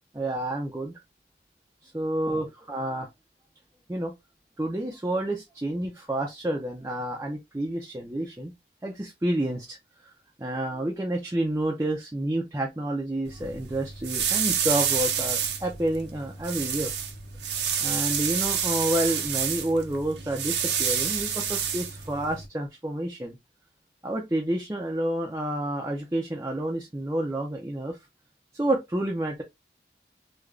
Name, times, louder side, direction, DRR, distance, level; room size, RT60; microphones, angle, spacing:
voice 1, 0.1-0.9 1.8-3.1 3.9-4.1 4.6-8.5 8.8-9.8 10.0-10.1 10.4-16.9 17.8-23.4 24.0-28.0 28.5-29.4, right 1 dB, 15° right, 0.5 m, -29 dB
sound 1, 13.2-22.5, right 8 dB, 80° right, 0.8 m, -29 dB
3.7 x 2.2 x 3.2 m
head